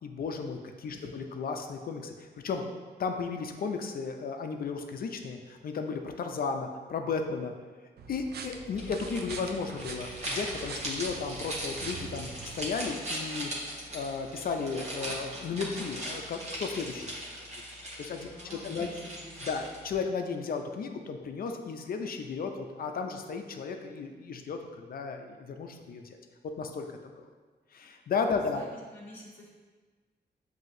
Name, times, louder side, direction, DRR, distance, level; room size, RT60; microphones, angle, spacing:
voice 1, 0.0-2.6 3.0-7.5 8.1-13.5 13.9-17.5 18.0-18.9 19.4-26.2 26.4-26.9 27.2-27.3 27.7-28.6, left 5 dB, 55° left, 5 dB, 0.5 m, -34 dB
sound 1, 8.0-12.9, right 5 dB, 60° right, 0.4 m, -44 dB
sound 2, 8.7-19.9, equal, 40° right, 1.1 m, -39 dB
voice 2, 18.3-19.6 28.4-28.7 28.9-29.6, left 1 dB, 10° left, -7 dB, 1.3 m, -49 dB
7.4 x 2.8 x 2.6 m, 1.4 s
wide cardioid pair, 120°, 18 cm